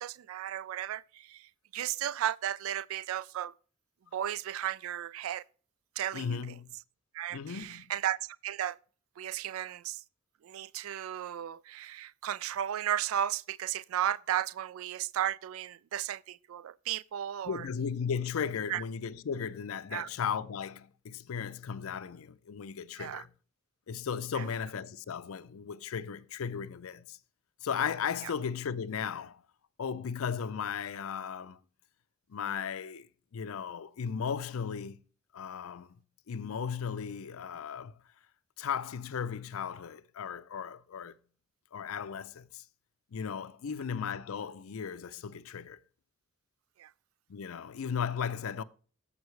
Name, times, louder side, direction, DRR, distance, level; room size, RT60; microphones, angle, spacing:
voice 1, 0.0-3.5 4.1-5.4 6.0-6.4 7.1-8.8 9.2-10.0 10.4-17.7 18.7-18.8 19.9-20.1 23.0-23.2 24.3-24.4 46.8-46.9, right 11 dB, 85° right, 0.3 m, -34 dB
voice 2, 6.1-6.8 7.3-7.9 17.4-23.3 23.9-27.2 27.6-29.4 29.8-31.6 32.3-33.1 33.3-35.0 35.3-36.0 36.3-38.0 38.6-41.2 41.7-42.6 43.1-45.8 47.3-48.6, left 7 dB, 90° left, 0.4 m, -36 dB
9.4 x 7.3 x 3.2 m
head